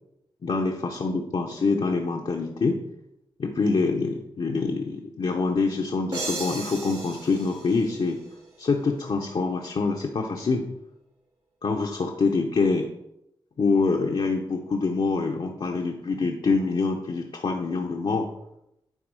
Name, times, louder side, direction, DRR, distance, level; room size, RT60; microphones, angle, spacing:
voice 1, 0.4-2.8 3.4-8.2 8.6-10.7 11.6-12.9 13.6-18.3, left 4 dB, 65° left, 1 dB, 0.9 m, -25 dB
sound 1, 6.1-8.8, right 3 dB, 70° right, 2.4 m, -36 dB
10.0 x 3.5 x 4.8 m, 0.84 s
cardioid pair, 45°, 10 cm